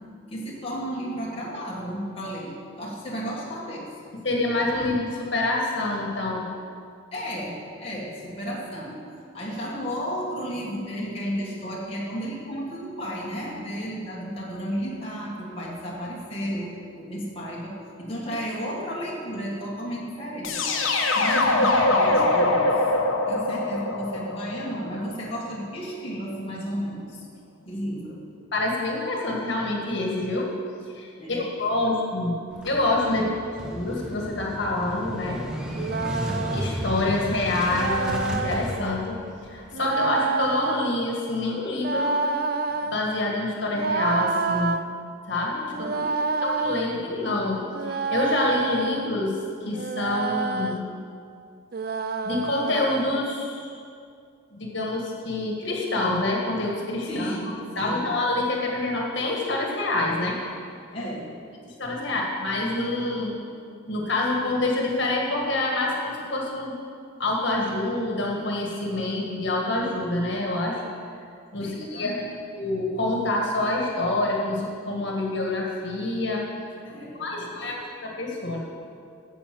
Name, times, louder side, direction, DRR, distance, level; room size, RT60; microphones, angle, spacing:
voice 1, 0.3-4.1 7.1-9.0 9.3-20.7 21.1-22.7 23.3-27.2 27.6-28.2 31.2-31.4 31.8-31.9 33.1-33.3 36.2-36.4 45.8-46.1 57.1-58.1 60.9-61.3 62.1-62.2 71.6-72.2 76.8-77.7, equal, 30° left, -5 dB, 1.7 m, -33 dB
voice 2, 4.2-6.5 28.5-30.5 30.9-32.4 32.6-33.2 33.7-35.4 36.5-39.2 39.5-42.2 42.8-44.8 45.3-45.9 46.6-50.8 52.2-53.8 54.5-57.3 57.7-60.4 61.8-63.4 63.9-66.8 67.2-70.8 71.5-72.1 72.5-76.4 77.2-78.6, left 2 dB, 55° left, -1 dB, 1.8 m, -26 dB
sound 1, 20.4-25.4, left 2 dB, 75° left, 1.2 m, -23 dB
Motorcycle / Engine starting, 32.5-39.7, equal, 5° right, 1.0 m, -34 dB
sound 2, 35.7-36.8 37.7-38.7 39.7-41.0 41.7-43.0 43.7-44.8 45.7-46.9 47.7-49.1 49.7-50.8 51.7-53.1, right 4 dB, 45° right, 0.4 m, -28 dB
9.4 x 7.0 x 7.7 m, 2.4 s
head